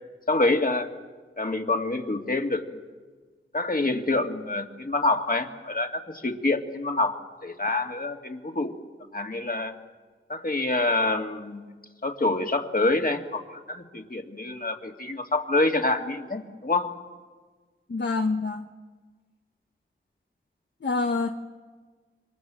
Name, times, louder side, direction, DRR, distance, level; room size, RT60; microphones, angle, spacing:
voice 1, 0.3-0.9 1.4-2.8 3.5-8.8 9.1-9.7 10.3-11.7 12.0-16.9, left 2 dB, 45° left, 4 dB, 2.3 m, -26 dB
voice 2, 17.9-18.6 20.8-21.3, left 3 dB, 60° left, 4 dB, 1.2 m, -26 dB
27.0 x 24.5 x 7.6 m, 1.4 s
wide cardioid pair, 55°, 21 cm